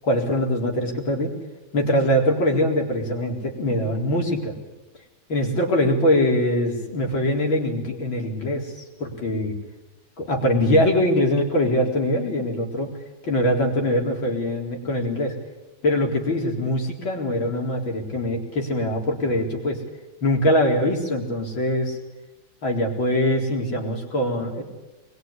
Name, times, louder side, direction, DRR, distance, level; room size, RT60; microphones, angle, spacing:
voice 1, 0.1-1.4 1.7-4.6 5.3-9.6 10.2-12.9 13.2-15.4 15.8-19.8 20.2-22.0 22.6-24.6, left 1 dB, 85° left, 1 dB, 4.9 m, -23 dB
24.5 x 22.0 x 9.9 m, 1.1 s
omnidirectional pair, 2.1 m